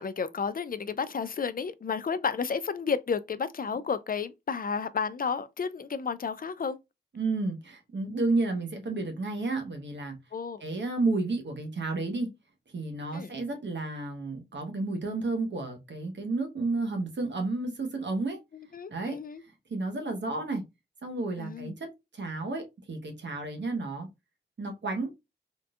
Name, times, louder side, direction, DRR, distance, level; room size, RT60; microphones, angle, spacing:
voice 1, 0.0-6.8 10.3-10.6 13.1-13.3 18.7-19.4 21.4-21.7, left 6 dB, 50° left, 0.4 m, -32 dB
voice 2, 7.1-10.2 10.6-12.3 12.7-18.4 18.9-19.2 19.7-20.6 21.0-24.1 24.6-25.1, right 3 dB, 75° right, 1.0 m, -31 dB
3.6 x 2.6 x 2.3 m
wide cardioid pair, 65°, 19 cm